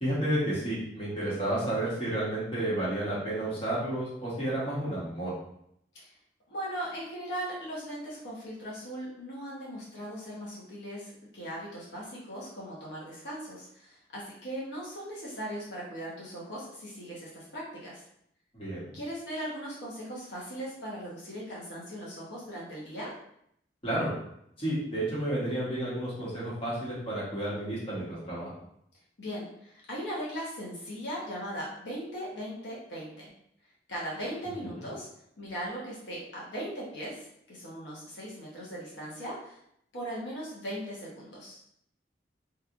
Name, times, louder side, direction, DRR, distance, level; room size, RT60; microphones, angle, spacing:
voice 1, 0.0-5.3 18.5-18.9 23.8-24.1 24.6-28.5 34.7-34.8, right 1 dB, 30° left, -8 dB, 1.1 m, -31 dB
voice 2, 6.5-18.0 18.9-23.1 29.2-33.3 33.9-35.1 35.4-39.6 39.9-41.6, equal, 90° left, -6 dB, 0.9 m, -39 dB
2.8 x 2.4 x 2.5 m, 0.73 s
head